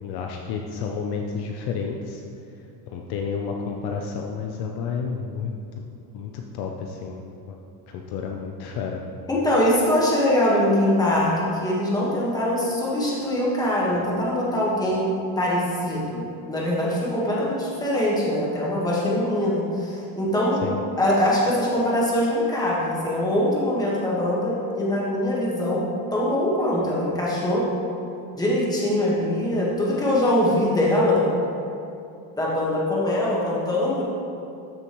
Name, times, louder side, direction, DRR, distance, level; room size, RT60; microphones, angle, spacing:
voice 1, 0.0-2.2 2.9-5.8 6.1-7.6 7.9-9.0 20.6-20.8, left 5 dB, 50° left, 2 dB, 0.7 m, -31 dB
voice 2, 9.3-20.6 21.0-25.8 26.1-27.6 28.4-31.3 32.4-34.0, left 1 dB, 10° left, -5 dB, 1.4 m, -23 dB
13.5 x 6.7 x 3.1 m, 2.7 s
cardioid pair, 175°, 48 cm